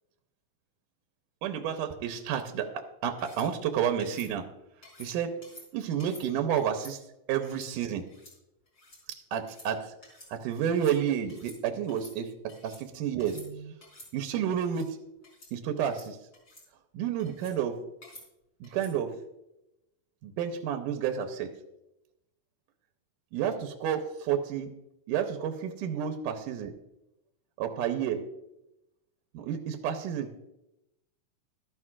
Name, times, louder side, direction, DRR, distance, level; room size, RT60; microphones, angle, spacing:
voice 1, 1.4-4.5 5.0-5.4 5.7-7.0 7.3-8.1 9.3-9.9 10.3-12.3 12.6-13.7 14.1-15.0 15.5-16.2 16.9-17.8 18.6-19.1 20.2-21.5 23.3-24.0 24.3-24.7 25.1-26.7 27.6-28.2 29.3-30.3, right 9 dB, 80° right, 5 dB, 2.3 m, -30 dB
sound 1, 3.2-3.5 4.0-4.3 4.8-5.1 5.4-5.7 6.0-6.3 6.6-6.9 7.4-7.7 8.1-8.3 8.7-9.0 9.4-9.7 10.0-10.3 10.6-11.0 11.3-11.6 11.9-12.8 13.2-13.5 13.8-14.1 14.5-14.9 15.2-15.5 15.8-16.1 16.3-16.6 17.2-17.6 18.0-18.2 18.6-18.9, left 1 dB, 35° left, 5.6 m, -51 dB
15.5 x 13.0 x 2.5 m, 0.90 s
omnidirectional pair, 3.9 m